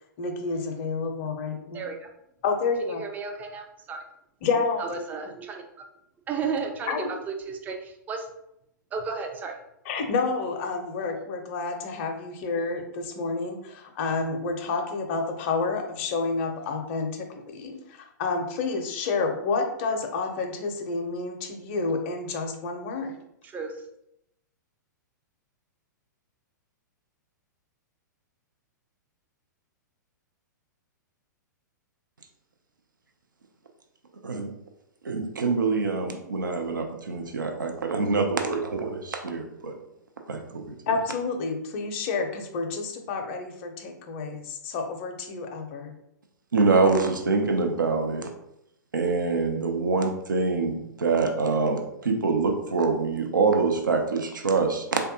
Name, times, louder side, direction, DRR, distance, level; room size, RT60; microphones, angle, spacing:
voice 1, 0.2-1.8 2.4-3.0 4.4-4.8 6.9-7.1 9.8-23.2 40.9-45.9, left 4 dB, 40° left, 4 dB, 0.5 m, -29 dB
voice 2, 1.7-2.1 2.8-4.0 4.8-5.6 6.3-8.3 8.9-9.6 23.4-23.8, right 5 dB, 15° right, 3 dB, 0.4 m, -33 dB
voice 3, 35.0-39.8 40.3-40.7 46.5-48.3 48.9-55.0, right 4 dB, 80° right, 3 dB, 0.5 m, -25 dB
3.4 x 2.2 x 2.7 m, 0.81 s
figure-of-eight pair, 105°, 10 cm